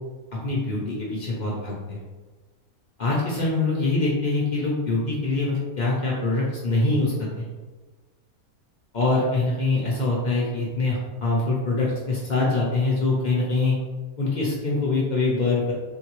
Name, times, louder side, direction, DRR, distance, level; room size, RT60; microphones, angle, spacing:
voice 1, 0.4-2.0 3.0-7.4 8.9-13.8 14.2-15.7, left 3 dB, 60° left, -4 dB, 0.5 m, -24 dB
3.5 x 2.2 x 3.0 m, 1.3 s
omnidirectional pair, 1.6 m